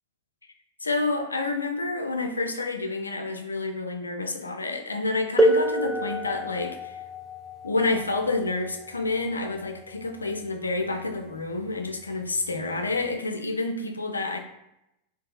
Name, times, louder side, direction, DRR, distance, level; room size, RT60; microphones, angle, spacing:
voice 1, 0.8-7.0 7.6-14.4, left 3 dB, 80° left, 5 dB, 0.3 m, -29 dB
sound 1, 5.4-10.8 11.9-12.0 12.8-13.0, right 1 dB, ahead, 0.4 m, -28 dB
2.6 x 2.3 x 2.4 m, 0.87 s
figure-of-eight pair, 90°, 0 cm